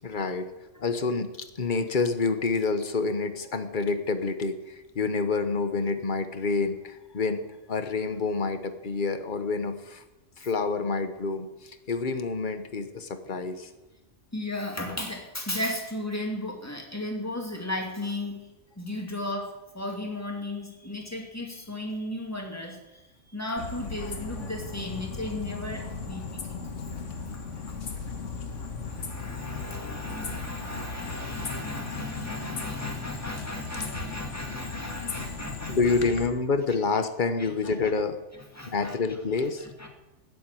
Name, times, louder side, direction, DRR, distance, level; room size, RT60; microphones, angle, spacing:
voice 1, 0.0-0.5 0.8-10.0 10.4-13.7 35.7-38.2 38.7-39.7, left 4 dB, 40° left, 9 dB, 1.2 m, -28 dB
voice 2, 14.3-18.5 18.8-23.1 23.3-26.4 26.7-28.2 28.9-36.0 37.4-37.7 38.5-38.9 39.4-39.5 39.8-39.9, left 1 dB, 10° left, 2 dB, 2.4 m, -35 dB
sound 1, 23.6-36.3, left 4 dB, 75° left, 1.8 m, -37 dB
14.0 x 7.7 x 9.2 m, 1.0 s
omnidirectional pair, 1.3 m